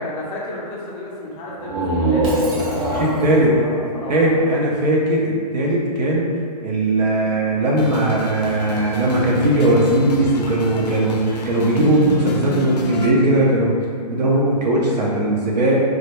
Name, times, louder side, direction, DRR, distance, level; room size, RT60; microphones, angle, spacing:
voice 1, 0.0-4.5, left 1 dB, 25° left, -4 dB, 0.4 m, -32 dB
sound 1, 1.5-5.2, right 1 dB, 35° right, 0.5 m, -24 dB
Shatter, 2.2-3.4, right 1 dB, 55° right, 0.8 m, -34 dB
voice 2, 2.9-3.5 4.1-6.3 6.6-13.7 14.1-15.8, right 1 dB, 85° right, -4 dB, 0.6 m, -18 dB
sound 2, 7.8-13.1, left 2 dB, 80° left, 0.4 m, -31 dB
2.1 x 2.1 x 2.9 m, 2.1 s
hypercardioid pair, 145°, 20 cm